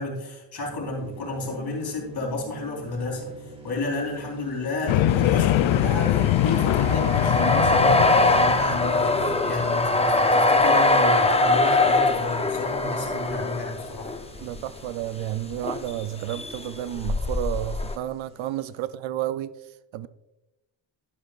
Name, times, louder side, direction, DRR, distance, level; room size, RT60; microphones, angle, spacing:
voice 1, 0.0-14.1, left 2 dB, 55° left, -1 dB, 3.6 m, -31 dB
sound 1, 0.6-18.9, right 2 dB, 10° right, 1.5 m, -47 dB
sound 2, 4.9-10.2, left 13 dB, 85° left, 0.5 m, -23 dB
sound 3, 5.1-14.6 15.5-16.0 16.3-18.0, left 2 dB, 15° left, 0.5 m, -22 dB
voice 2, 14.4-20.1, right 12 dB, 85° right, 14 dB, 0.5 m, -31 dB
11.5 x 10.5 x 2.4 m, 0.96 s
wide cardioid pair, 135°, 46 cm